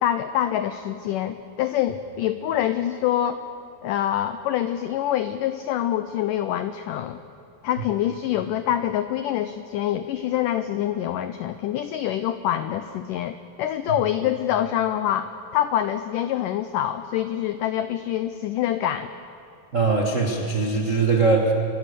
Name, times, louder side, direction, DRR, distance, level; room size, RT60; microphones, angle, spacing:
voice 1, 0.0-3.4 3.8-7.2 7.6-19.1, left 11 dB, 85° left, 10 dB, 1.8 m, -25 dB
voice 2, 19.7-21.5, right 4 dB, 75° right, 1 dB, 0.7 m, -21 dB
27.5 x 22.0 x 6.8 m, 2.7 s
omnidirectional pair, 4.6 m